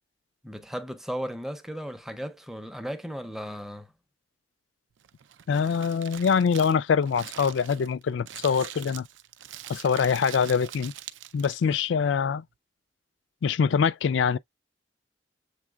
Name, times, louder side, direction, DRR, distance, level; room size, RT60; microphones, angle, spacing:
voice 1, 0.4-3.9, equal, ahead, 0.5 m, -35 dB
Crumpling crinkling, 5.0-11.7, right 11 dB, 85° right, 0.4 m, -43 dB
voice 2, 5.5-9.1 9.7-10.9 11.3-12.4 13.4-14.4, left 6 dB, 80° left, 0.3 m, -24 dB
7.3 x 3.2 x 2.2 m
head